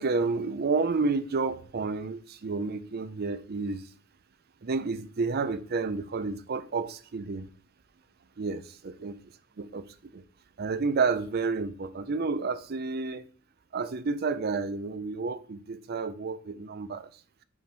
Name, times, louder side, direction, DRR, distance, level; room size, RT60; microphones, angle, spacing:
voice 1, 0.0-3.8 4.6-7.5 8.4-9.1 9.6-10.2 10.6-13.2 13.7-17.1, right 4 dB, 50° right, 0.5 m, -30 dB
6.2 x 5.2 x 4.5 m
head